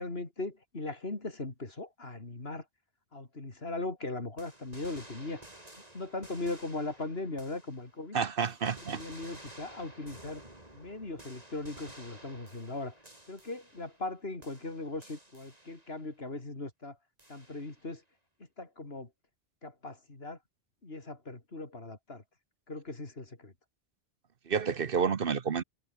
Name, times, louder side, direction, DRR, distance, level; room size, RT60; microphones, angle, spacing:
voice 1, 0.0-2.7 3.1-5.4 5.9-8.2 8.8-10.4 10.7-13.0 13.3-17.0 17.3-18.0 18.6-19.1 19.6-20.4 20.8-22.2 22.7-23.5, left 2 dB, 70° left, 3.8 m, -39 dB
sound 1, 4.4-8.1 8.4-14.1 14.4-16.1 17.2-17.9, right 1 dB, 40° right, 5.2 m, -53 dB
voice 2, 8.1-9.0 24.5-25.6, right 6 dB, 60° right, 1.1 m, -29 dB
omnidirectional pair, 1.1 m